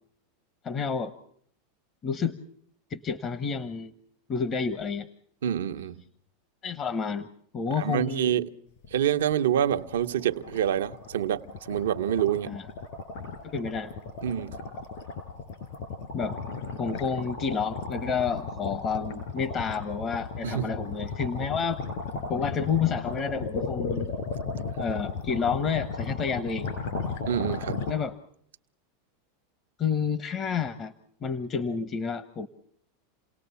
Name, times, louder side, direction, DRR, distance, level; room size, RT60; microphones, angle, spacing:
voice 1, 0.6-1.1 2.0-2.4 2.9-3.9 4.3-5.1 6.6-7.3 7.5-8.3 12.5-12.6 13.4-13.9 16.1-16.4 16.8-21.8 22.3-24.1 24.8-26.7 27.9-28.1 29.8-30.9 31.2-32.5, left 6 dB, 35° left, 1.1 m, -29 dB
voice 2, 5.4-6.0 7.8-8.5 8.9-11.4 11.7-12.6 14.2-14.6 20.4-20.7 27.2-27.8, right 10 dB, 85° right, 1.0 m, -27 dB
sound 1, 8.8-9.0 9.3-9.4 9.7-27.9, left 4 dB, 65° left, 6.3 m, -35 dB
29.0 x 18.0 x 7.0 m
hypercardioid pair, 115°, 0 cm